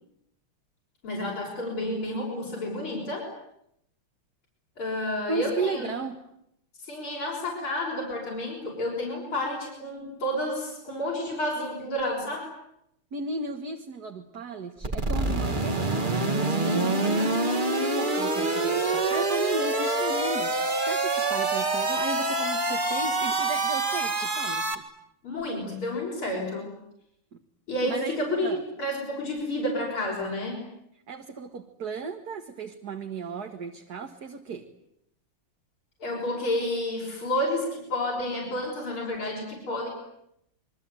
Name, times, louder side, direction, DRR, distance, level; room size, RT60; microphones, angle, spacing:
voice 1, 1.0-3.3 4.8-5.9 6.8-12.5 17.0-17.3 25.2-26.7 27.7-28.5 28.8-30.6 36.0-39.9, left 1 dB, 70° left, -3 dB, 6.9 m, -30 dB
voice 2, 5.3-6.2 13.1-17.4 17.8-24.8 27.3-27.4 27.9-28.6 31.1-34.7, right 4 dB, 50° right, 4 dB, 2.1 m, -35 dB
sound 1, 14.8-24.7, right 2 dB, 25° right, 2.2 m, -26 dB
28.5 x 22.5 x 9.3 m, 0.77 s
omnidirectional pair, 2.4 m